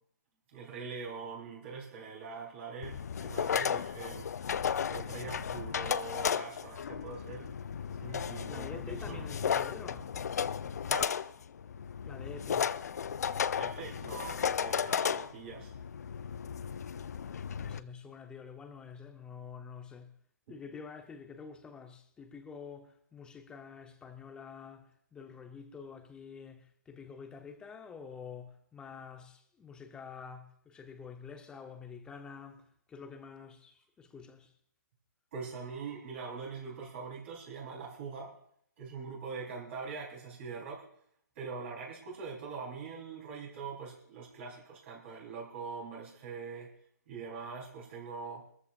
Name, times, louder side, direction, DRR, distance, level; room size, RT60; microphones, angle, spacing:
voice 1, 0.5-4.5 4.9-7.5 8.0-9.2 10.9-11.1 13.5-15.7 20.5-20.6 35.3-38.3 38.8-40.8 41.4-46.7 47.1-48.4, right 5 dB, 40° right, 3.8 m, -43 dB
sound 1, 2.8-17.8, left 7 dB, 55° left, 0.6 m, -34 dB
voice 2, 8.5-10.1 12.1-12.7 17.6-20.1 20.5-32.6 32.9-34.5, left 6 dB, 10° left, 0.8 m, -47 dB
23.5 x 14.0 x 2.5 m
hypercardioid pair, 145°, 10 cm